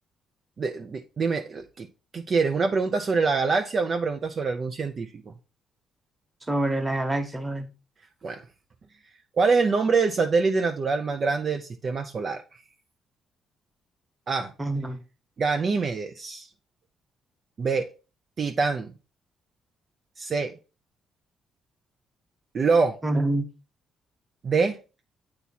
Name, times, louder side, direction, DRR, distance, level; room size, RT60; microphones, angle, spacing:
voice 1, 0.6-1.9 2.1-5.3 8.2-8.4 9.4-12.4 14.3-14.5 15.4-16.5 17.6-17.9 18.4-18.9 20.2-20.5 22.5-23.0 24.4-24.8, right 4 dB, 45° right, 0.5 m, -25 dB
voice 2, 6.5-7.7 14.6-15.0 23.0-23.4, right 1 dB, 15° right, 1.1 m, -26 dB
8.1 x 2.9 x 4.1 m
cardioid pair, 90°, 0 cm